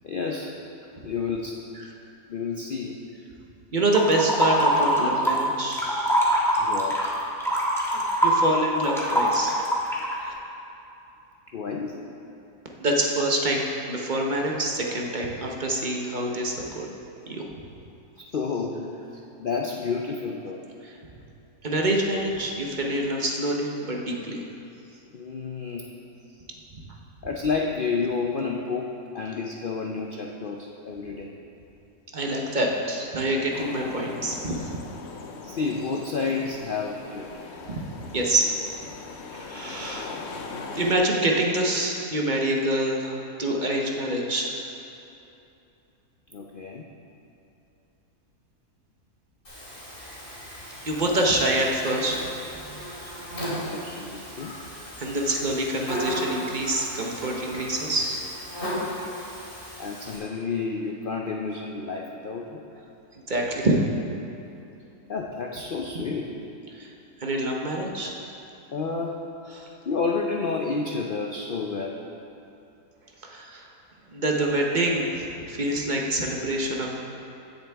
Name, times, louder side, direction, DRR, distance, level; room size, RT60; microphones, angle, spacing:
voice 1, 0.0-0.5 1.0-1.6 2.3-3.0 6.6-7.0 11.5-12.0 18.2-19.0 19.4-20.6 25.1-25.9 27.2-31.3 35.4-37.3 46.3-46.8 53.3-54.6 59.8-62.6 65.1-66.3 68.7-69.2 69.9-72.0, left 4 dB, 85° left, 0 dB, 0.4 m, -30 dB
voice 2, 3.7-6.2 7.4-7.5 7.9-9.6 10.2-10.3 12.8-16.9 17.3-17.4 20.8-21.0 21.6-24.4 32.1-34.8 37.7-37.8 38.1-38.5 39.3-40.2 40.7-44.6 50.8-52.2 52.6-53.1 55.0-58.2 63.3-63.8 66.7-66.9 67.2-68.2 69.5-69.7 73.2-73.7 74.1-76.9, right 1 dB, 40° right, 0 dB, 0.8 m, -26 dB
sound 1, 3.9-5.4 5.7-10.1, equal, ahead, 1.3 m, -23 dB
sound 2, 33.5-41.0, left 4 dB, 55° left, 0.8 m, -40 dB
Buzz, 49.4-60.2, equal, 35° left, 2.9 m, -36 dB
16.0 x 7.0 x 3.5 m, 2.8 s
omnidirectional pair, 1.7 m